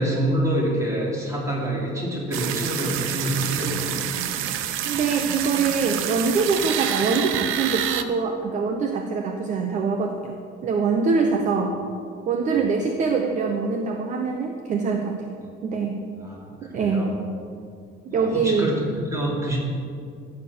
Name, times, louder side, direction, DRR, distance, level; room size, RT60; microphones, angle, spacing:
voice 1, 0.0-4.0 12.5-12.7 15.4-15.5 16.2-17.1 18.1-18.8 19.1-19.6, right 1 dB, 15° right, -3 dB, 2.8 m, -27 dB
sound 1, 2.3-8.0, right 10 dB, 75° right, 0.8 m, -28 dB
voice 2, 4.8-10.3 10.6-11.8 12.3-15.3 15.6-16.0 16.7-17.1 18.0-18.7, right 4 dB, 35° right, 4 dB, 0.8 m, -24 dB
15.0 x 6.7 x 6.9 m, 2.3 s
cardioid pair, 170°, 21 cm